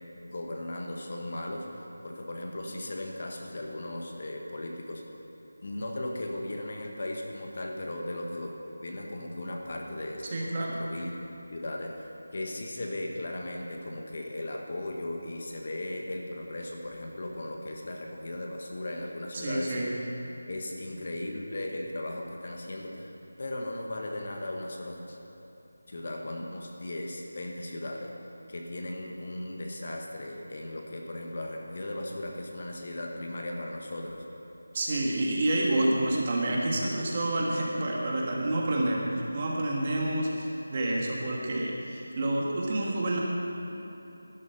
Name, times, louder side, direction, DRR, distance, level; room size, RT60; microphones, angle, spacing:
voice 1, 0.2-1.7 2.0-5.0 5.6-8.5 8.8-11.1 11.5-19.8 20.5-23.1 23.4-25.2 25.9-28.2 28.5-34.2, left 1 dB, 40° left, 1 dB, 1.3 m, -37 dB
voice 2, 10.3-10.8 19.3-20.0 34.7-43.2, right 1 dB, 25° right, -2 dB, 1.5 m, -28 dB
12.0 x 11.5 x 5.6 m, 3.0 s
figure-of-eight pair, 175°, 0 cm